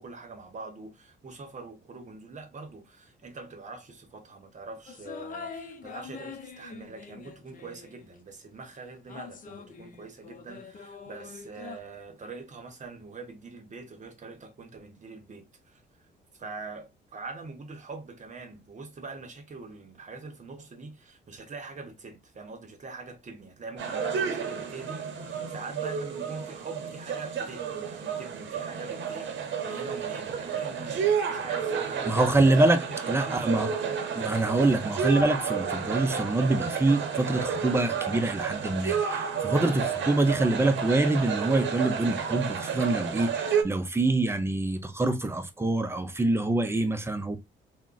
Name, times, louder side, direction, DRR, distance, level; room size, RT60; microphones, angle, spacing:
voice 1, 0.0-15.8 16.3-32.5 33.1-33.6, right 3 dB, 40° right, 0.9 m, -43 dB
sound 1, 4.9-8.2 9.1-11.8, left 5 dB, 45° left, 0.6 m, -44 dB
sound 2, 23.8-43.6, right 6 dB, 70° right, 0.7 m, -31 dB
voice 2, 32.1-33.7 34.2-47.4, right 2 dB, 10° right, 0.5 m, -25 dB
3.6 x 2.1 x 2.3 m
cardioid pair, 90°, 20 cm